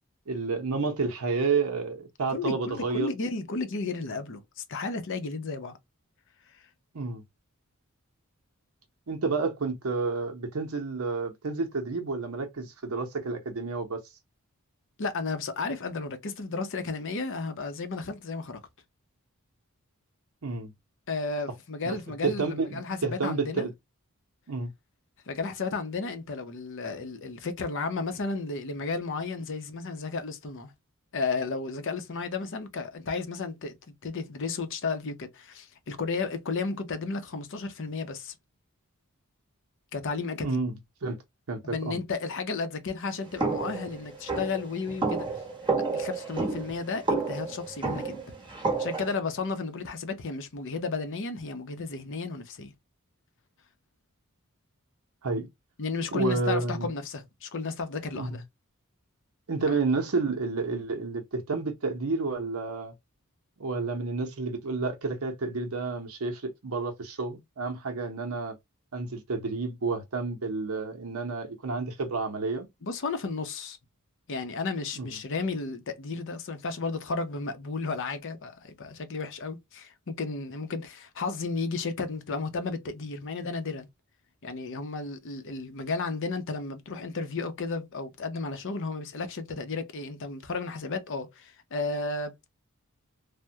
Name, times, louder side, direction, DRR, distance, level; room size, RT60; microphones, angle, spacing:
voice 1, 0.3-3.1 6.9-7.2 9.1-14.0 20.4-20.7 21.8-23.7 24.5-24.7 40.4-41.2 41.5-42.0 55.2-55.5 56.1-56.9 58.1-58.4 59.5-62.9 63.6-68.5 68.9-72.7 74.9-75.1, right 4 dB, 70° right, 0.7 m, -30 dB
voice 2, 2.3-5.8 15.0-18.6 21.1-23.7 25.3-30.7 31.1-33.8 34.0-38.3 39.9-40.6 41.6-45.3 45.9-48.2 48.6-52.7 55.8-58.4 59.7-59.8 72.8-73.8 74.3-83.9 84.4-92.5, left 4 dB, 60° left, 0.7 m, -33 dB
sound 1, 43.4-49.1, right 3 dB, 20° right, 0.9 m, -30 dB
3.4 x 2.1 x 2.7 m
head